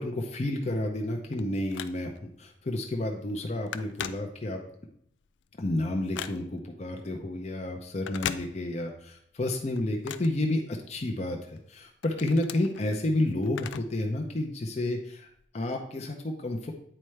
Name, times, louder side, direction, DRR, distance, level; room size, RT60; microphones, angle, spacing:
voice 1, 0.0-4.6 5.6-11.4 11.7-15.3 15.5-16.7, left 1 dB, 35° left, 2 dB, 0.6 m, -30 dB
Telephone, 0.9-2.3 2.8-3.0 3.3-4.8 5.2-6.7 7.9-9.0 9.3-11.1 11.6-14.1 14.4-14.5 15.3-15.4, left 9 dB, 80° left, 0.4 m, -40 dB
8.8 x 4.5 x 3.2 m, 0.70 s
head